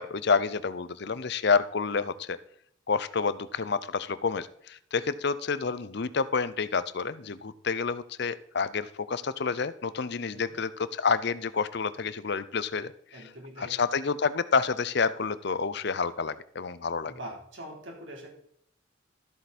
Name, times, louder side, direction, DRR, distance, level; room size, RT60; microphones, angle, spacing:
voice 1, 0.0-2.4 2.9-13.2 13.6-17.1, left 5 dB, 55° left, 15 dB, 0.6 m, -29 dB
voice 2, 13.1-13.7 17.0-18.3, equal, 70° right, 0 dB, 3.8 m, -43 dB
13.5 x 8.0 x 4.2 m, 0.68 s
head